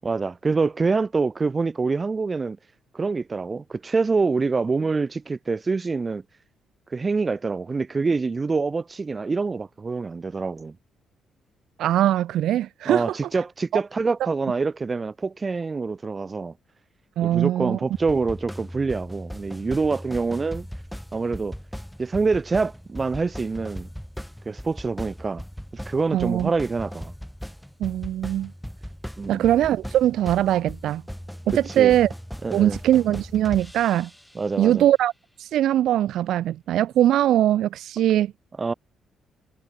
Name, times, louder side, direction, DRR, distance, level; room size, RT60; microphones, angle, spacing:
voice 1, 0.0-2.6 2.9-6.2 6.9-10.8 12.9-16.5 17.2-20.7 21.1-21.6 22.0-23.9 24.5-25.4 25.9-27.1 29.2-29.4 31.5-32.0 32.4-32.8 34.4-34.9 38.6-38.7, right 4 dB, 30° right, 1.8 m, -26 dB
voice 2, 11.8-13.2 13.7-13.8 14.2-14.3 17.2-17.8 26.1-26.5 27.8-28.5 29.3-31.0 31.5-32.1 32.5-34.1 34.6-35.1 35.4-38.3, right 12 dB, 80° right, 0.3 m, -21 dB
sound 1, 17.9-34.5, equal, ahead, 3.4 m, -38 dB
cardioid pair, 90°, 0 cm